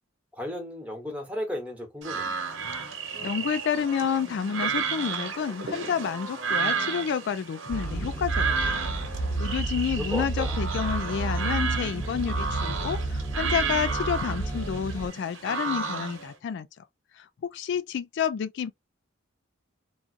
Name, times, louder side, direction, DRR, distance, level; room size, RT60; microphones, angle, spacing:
voice 1, 0.3-2.3 10.0-10.6, left 1 dB, 5° right, 1.2 m, -34 dB
sound 1, 2.0-16.3, right 5 dB, 70° right, 1.1 m, -32 dB
voice 2, 3.2-8.9 9.4-16.8 17.1-18.7, left 7 dB, 60° left, 0.3 m, -30 dB
sound 2, 7.7-15.1, right 2 dB, 10° left, 0.9 m, -31 dB
3.8 x 2.4 x 2.4 m
head